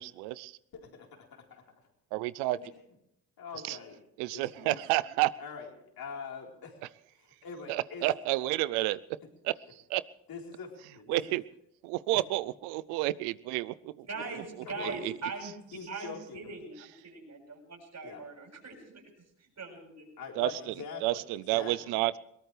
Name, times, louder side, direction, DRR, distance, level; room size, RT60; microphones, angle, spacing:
voice 1, 0.0-0.6 2.1-2.6 3.7-3.8 4.2-5.3 7.7-9.0 9.4-10.0 11.1-11.4 11.8-14.1 14.8-15.1 20.4-20.7 21.0-22.2, right 17 dB, 85° right, 19 dB, 0.6 m, -30 dB
voice 2, 0.7-1.6 2.5-2.8 3.4-3.9 4.3-4.8 5.4-5.7 6.0-6.8 7.1-8.0 10.3-11.4 12.1-12.2 14.6-15.1 15.7-16.6 18.0-18.2 20.2-22.0, left 5 dB, 65° left, 0 dB, 4.3 m, -44 dB
voice 3, 14.1-15.5 15.9-19.1 19.4-20.1, right 3 dB, 50° right, -2 dB, 7.0 m, -41 dB
21.5 x 18.5 x 3.3 m, 0.77 s
hypercardioid pair, 55°, 39 cm